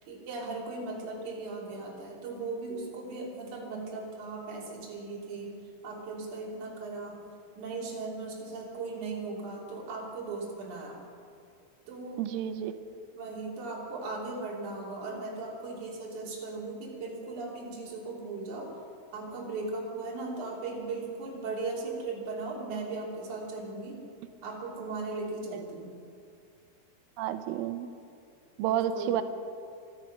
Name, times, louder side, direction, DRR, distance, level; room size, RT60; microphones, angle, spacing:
voice 1, 0.0-5.6 5.8-7.2 7.6-11.1 11.9-12.2 13.1-18.7 19.1-24.0 24.4-25.9 28.7-29.2, right 3 dB, 45° right, -3 dB, 4.0 m, -37 dB
voice 2, 12.2-12.8 25.5-25.6 27.2-27.9 28.6-29.2, right 10 dB, 90° right, 10 dB, 3.2 m, -30 dB
24.5 x 10.0 x 5.9 m, 2.4 s
omnidirectional pair, 5.5 m